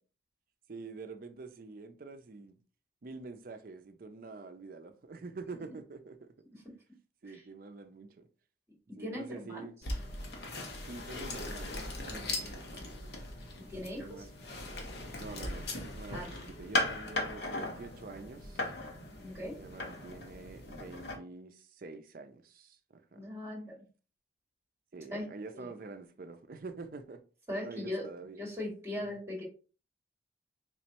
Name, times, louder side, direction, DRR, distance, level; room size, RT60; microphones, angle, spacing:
voice 1, 0.7-2.6 3.0-6.6 7.2-8.3 8.9-9.7 10.8-12.9 13.8-14.3 15.2-18.7 19.6-23.3 24.9-27.2 27.6-28.5 28.9-29.0, right 3 dB, 50° right, 0.5 m, -47 dB
voice 2, 8.9-9.7 13.5-14.3 16.1-16.3 19.2-19.6 23.1-23.8 25.1-25.3 25.5-25.7 27.5-28.1 28.4-29.4, left 1 dB, 15° right, 1.7 m, -39 dB
sound 1, 9.8-21.2, left 2 dB, 60° left, 0.8 m, -38 dB
3.7 x 3.1 x 2.9 m
head